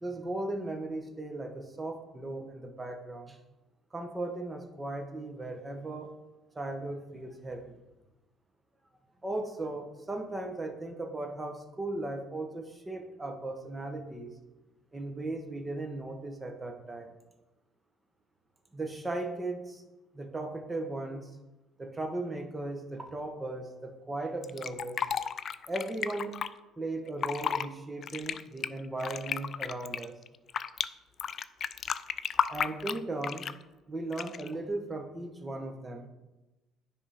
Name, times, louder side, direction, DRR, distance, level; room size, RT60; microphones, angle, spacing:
voice 1, 0.0-3.4 3.9-6.1 6.5-7.8 9.2-14.4 14.9-17.1 18.7-19.8 20.1-21.3 21.8-25.1 25.7-26.4 26.8-30.1 32.5-33.4 33.9-36.1, right 2 dB, 20° right, 4 dB, 1.3 m, -37 dB
Fill (with liquid), 24.4-26.5 27.1-27.7 28.0-30.9 31.2-33.6 34.1-34.5, left 7 dB, 50° left, 0.3 m, -33 dB
9.8 x 3.7 x 5.0 m, 1.0 s
supercardioid pair, 75°, 0 cm